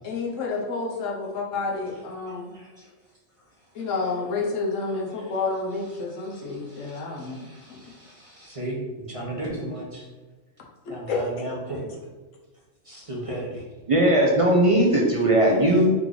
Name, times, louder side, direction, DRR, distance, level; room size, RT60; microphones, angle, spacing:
voice 1, 0.0-2.5 3.7-7.9 11.1-11.2, left 4 dB, 90° left, -2 dB, 1.1 m, -30 dB
voice 2, 2.3-2.9 6.3-10.1 10.9-11.9 12.8-13.6, right 1 dB, 30° right, -4 dB, 0.8 m, -35 dB
voice 3, 13.9-15.9, right 1 dB, 50° right, -2 dB, 0.4 m, -18 dB
3.7 x 3.1 x 3.7 m, 1.3 s
omnidirectional pair, 1.3 m